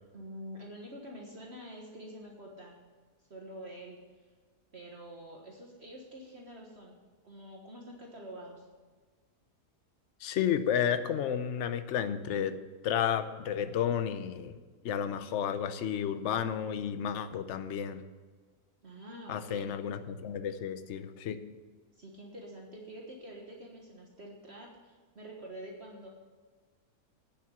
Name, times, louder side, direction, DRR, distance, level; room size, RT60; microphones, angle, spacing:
voice 1, 0.1-2.8 3.3-4.0 4.7-7.0 7.2-8.7 18.8-19.7 22.0-26.1, right 1 dB, 40° right, -2 dB, 1.6 m, -47 dB
voice 2, 10.2-12.6 12.8-14.6 14.8-18.0 19.3-21.4, left 8 dB, 55° left, 11 dB, 0.9 m, -32 dB
9.4 x 7.5 x 7.6 m, 1.5 s
omnidirectional pair, 1.7 m